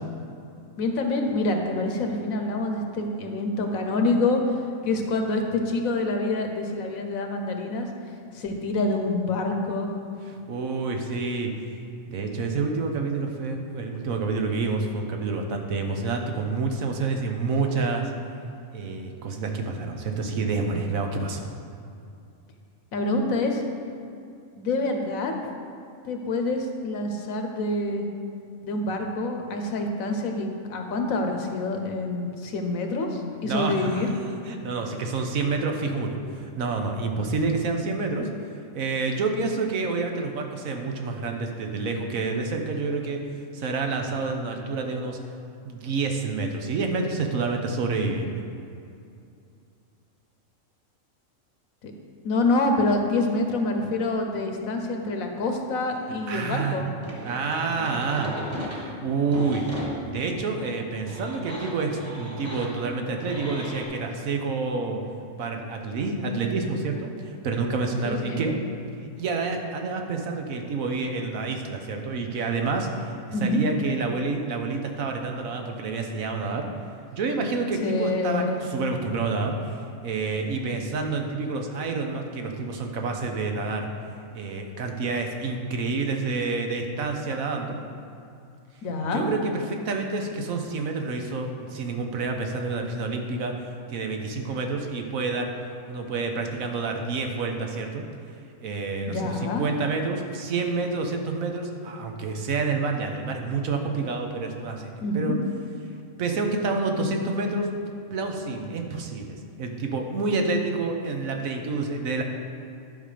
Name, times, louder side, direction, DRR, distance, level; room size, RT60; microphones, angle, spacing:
voice 1, 0.8-4.6 4.8-7.9 8.3-9.9 22.9-23.6 24.5-25.3 26.0-28.1 28.6-34.1 51.8-51.9 52.2-56.9 68.0-68.4 73.3-73.6 77.8-78.7 88.8-89.3 99.1-99.7 105.0-105.4, left 2 dB, 80° left, 3 dB, 1.4 m, -26 dB
voice 2, 10.3-11.8 12.1-18.1 18.7-21.5 33.4-34.1 34.4-38.3 38.7-43.2 43.5-45.2 45.6-48.4 56.3-56.8 57.2-58.3 58.7-59.6 60.0-65.0 65.4-68.6 69.2-76.7 77.1-83.9 84.3-87.8 89.1-95.5 95.9-98.0 98.6-104.9 105.1-105.4 106.2-107.7 108.1-112.2, right 4 dB, 80° right, 3 dB, 1.3 m, -28 dB
sound 1, 57.0-63.8, equal, 10° right, 1.3 m, -36 dB
11.0 x 5.7 x 5.0 m, 2.5 s
omnidirectional pair, 1.4 m